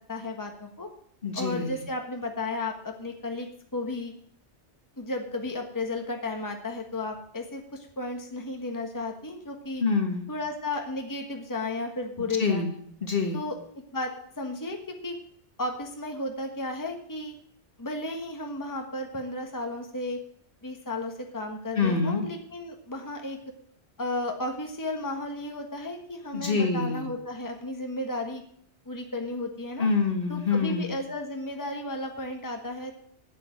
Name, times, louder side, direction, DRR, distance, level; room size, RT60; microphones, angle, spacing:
voice 1, 0.1-0.9 1.4-4.1 5.0-9.8 10.3-12.6 13.3-14.8 15.0-15.2 15.6-17.3 17.8-20.2 20.6-23.4 24.0-28.4 28.8-29.9 30.3-33.0, left 2 dB, 15° left, 3 dB, 1.4 m, -34 dB
voice 2, 1.2-1.8 9.8-10.3 12.2-12.7 13.0-13.4 21.8-22.2 26.3-27.1 29.8-30.9, left 4 dB, 55° left, 3 dB, 1.8 m, -26 dB
9.0 x 8.8 x 7.3 m, 0.64 s
omnidirectional pair, 1.1 m